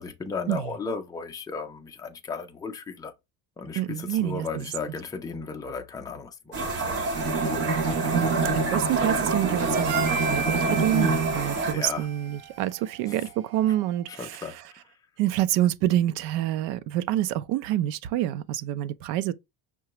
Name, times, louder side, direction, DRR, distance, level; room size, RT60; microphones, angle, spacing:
voice 1, 0.0-3.1 3.6-7.0 11.7-12.1 14.1-14.8, left 4 dB, 10° left, 0.4 m, -35 dB
voice 2, 3.8-4.7 8.1-14.6 15.2-19.3, right 13 dB, 75° right, 0.6 m, -27 dB
sound 1, 6.5-11.7, right 3 dB, 35° right, 1.3 m, -29 dB
Bowed string instrument, 7.1-11.5, right 3 dB, 15° right, 1.0 m, -28 dB
Harmonica, 9.6-14.1, right 6 dB, 60° right, 1.1 m, -35 dB
5.7 x 2.2 x 2.9 m
cardioid pair, 145°, 42 cm